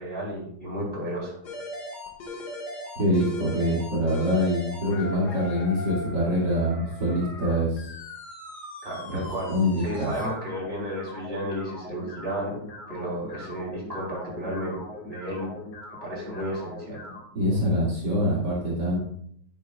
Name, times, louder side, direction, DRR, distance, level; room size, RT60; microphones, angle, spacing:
voice 1, 0.0-1.4 8.8-12.6 12.9-15.5 16.0-17.0, equal, 30° right, -4 dB, 3.8 m, -33 dB
sound 1, 1.4-17.2, left 2 dB, 60° left, 2.3 m, -40 dB
voice 2, 3.0-7.8 9.0-9.2 9.5-10.1 17.3-19.0, equal, 65° right, -6 dB, 2.9 m, -25 dB
10.5 x 10.5 x 2.4 m, 0.67 s
omnidirectional pair, 2.0 m